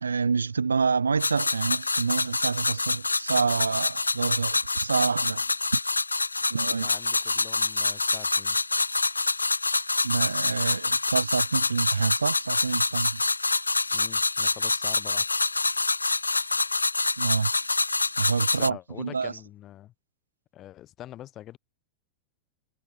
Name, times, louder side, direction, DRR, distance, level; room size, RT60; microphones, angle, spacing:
voice 1, 0.0-5.5 5.7-5.8 6.5-6.9 10.0-13.2 17.2-17.5 18.2-19.3, right 5 dB, 75° right, 0.5 m, -27 dB
sound 1, 1.2-18.7, left 3 dB, 80° left, 0.9 m, -26 dB
voice 2, 6.7-8.6 13.9-15.3 18.5-19.9 20.5-21.6, left 13 dB, 30° left, 1.7 m, -44 dB
figure-of-eight pair, 90°, 0 cm